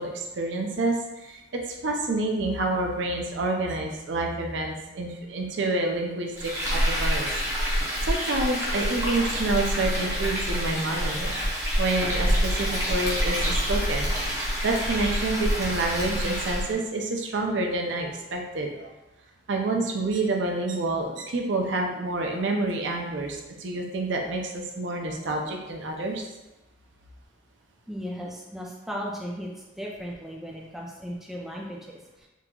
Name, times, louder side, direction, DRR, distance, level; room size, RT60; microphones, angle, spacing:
voice 1, 0.0-7.3 8.0-18.9 19.5-26.2, right 2 dB, 75° right, 1 dB, 0.5 m, -28 dB
Frying (food), 6.4-16.7, equal, 15° right, 0.8 m, -27 dB
voice 2, 27.9-29.5 29.8-32.3, equal, ahead, -3 dB, 0.3 m, -36 dB
3.8 x 2.8 x 2.3 m, 1.0 s
head